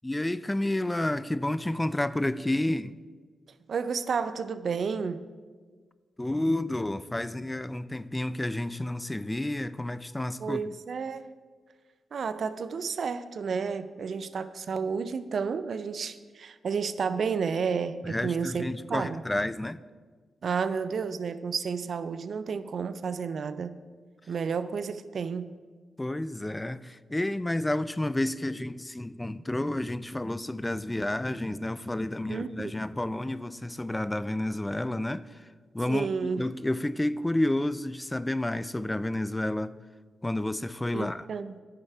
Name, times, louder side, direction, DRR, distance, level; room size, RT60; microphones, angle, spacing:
voice 1, 0.0-2.9 6.2-10.6 18.0-19.8 26.0-35.5 35.7-39.8 40.2-41.3, left 1 dB, 20° left, 0.4 m, -30 dB
voice 2, 3.7-5.2 10.4-11.3 12.1-19.2 20.4-23.8 24.3-25.5 32.3-32.7 35.9-36.4 40.9-41.6, right 5 dB, 65° right, 0.4 m, -31 dB
9.8 x 6.6 x 4.7 m
supercardioid pair, 45°, 0 cm